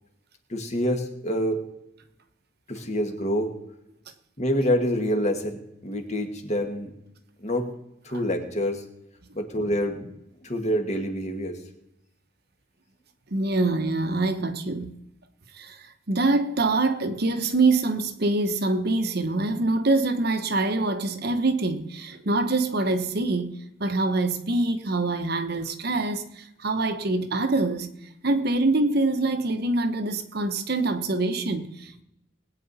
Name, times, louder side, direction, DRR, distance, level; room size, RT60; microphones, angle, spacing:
voice 1, 0.5-1.6 2.7-3.5 4.4-6.9 7.4-7.7 8.0-8.8 9.3-10.1 10.4-11.6, equal, 35° left, 1.8 m, -26 dB
voice 2, 13.3-15.0 15.5-15.8 16.1-27.9 28.2-32.0, right 2 dB, 55° right, 1.0 m, -25 dB
20.0 x 9.1 x 4.2 m
head